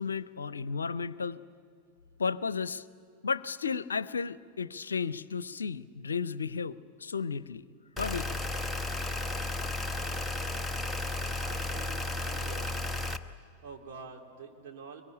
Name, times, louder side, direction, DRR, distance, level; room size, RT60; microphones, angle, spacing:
voice 1, 0.0-1.4 2.2-2.8 3.2-7.6 8.0-8.4, left 5 dB, 75° left, 18 dB, 0.6 m, -33 dB
sound 1, 8.0-13.2, left 2 dB, ahead, 1.1 m, -33 dB
voice 2, 11.4-12.7 13.6-15.0, right 5 dB, 50° right, 2 dB, 3.4 m, -47 dB
25.0 x 23.0 x 9.9 m, 2.2 s
figure-of-eight pair, 90°, 0 cm